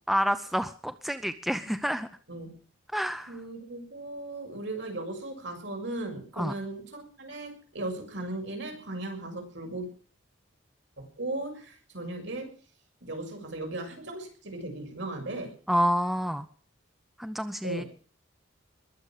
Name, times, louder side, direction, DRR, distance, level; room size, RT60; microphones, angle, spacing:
voice 1, 0.1-2.1 2.9-3.4 6.4-6.5 15.7-16.5 17.2-17.8, equal, ahead, 10 dB, 0.7 m, -28 dB
voice 2, 3.3-9.9 11.0-12.5 13.0-15.5 17.6-17.9, right 2 dB, 60° right, 3 dB, 6.6 m, -37 dB
21.5 x 8.0 x 7.4 m, 0.41 s
head